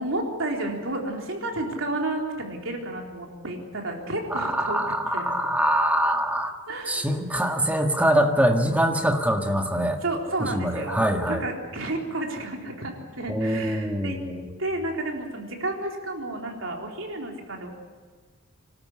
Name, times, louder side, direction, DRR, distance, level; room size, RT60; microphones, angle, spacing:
voice 1, 0.0-4.8 5.1-5.3 6.7-7.1 10.0-14.2 14.6-17.7, right 2 dB, 75° right, 1 dB, 3.9 m, -31 dB
voice 2, 4.3-6.5 6.9-10.0 10.5-11.4 13.3-14.5, equal, 5° right, 3 dB, 1.8 m, -24 dB
25.0 x 13.0 x 9.9 m, 1.5 s
head